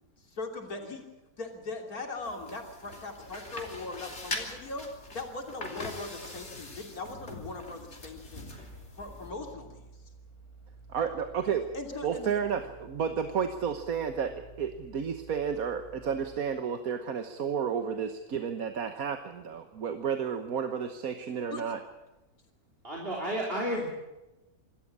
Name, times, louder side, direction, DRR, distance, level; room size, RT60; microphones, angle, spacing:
voice 1, 0.3-1.1 1.4-4.9 5.1-8.5 9.0-9.8 11.7-12.4 21.5-21.6, left 3 dB, 80° left, 3 dB, 3.6 m, -40 dB
sound 1, 2.2-9.3, left 2 dB, 50° left, 3.4 m, -42 dB
sound 2, 8.3-16.4, right 3 dB, 30° left, 5.4 m, -52 dB
voice 2, 10.9-11.7 12.0-21.8, right 7 dB, 75° right, 8 dB, 1.6 m, -32 dB
voice 3, 22.8-23.9, equal, 40° right, -2 dB, 3.7 m, -31 dB
26.0 x 13.5 x 8.7 m, 1.0 s
omnidirectional pair, 1.5 m